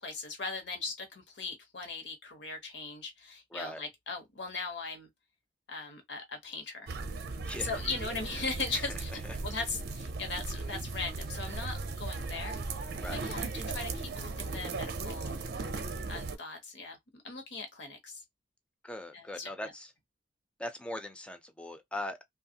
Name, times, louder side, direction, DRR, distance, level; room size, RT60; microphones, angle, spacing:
voice 1, 0.0-5.1 5.7-6.9 7.6-9.1 9.4-12.6 13.1-15.3 16.1-18.2 19.1-19.5, left 3 dB, 65° left, 1.0 m, -39 dB
voice 2, 3.5-3.8 7.4-7.8 8.7-9.4 13.0-13.2 18.8-19.9 20.6-22.2, left 1 dB, 5° left, 0.4 m, -40 dB
sound 1, 6.9-16.4, right 3 dB, 60° right, 0.5 m, -37 dB
2.8 x 2.3 x 2.7 m
head